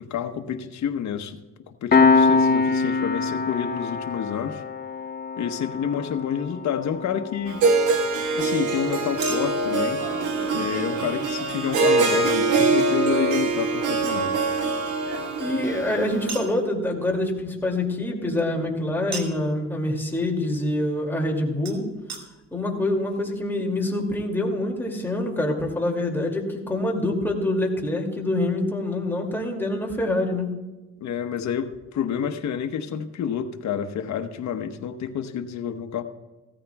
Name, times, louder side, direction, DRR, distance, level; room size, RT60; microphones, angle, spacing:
voice 1, 0.0-1.4 1.7-4.6 5.4-7.7 8.3-10.0 10.5-14.4 31.0-36.0, left 8 dB, 65° left, 7 dB, 1.1 m, -29 dB
Piano, 1.9-13.0, left 4 dB, 30° left, 0.8 m, -26 dB
Chink clink, 6.4-6.5 9.2-12.4 14.0-15.6 16.3-16.6 19.1-19.5 21.7-21.8 22.1-22.2 22.9-23.0 23.1-23.2, right 3 dB, 60° right, 2.1 m, -38 dB
Harp, 7.5-16.5, right 3 dB, 90° right, 1.6 m, -24 dB
voice 2, 15.4-21.8 22.5-30.5, left 1 dB, 5° left, 0 dB, 2.5 m, -25 dB
16.5 x 14.0 x 2.3 m, 1.2 s
cardioid pair, 90°, 30 cm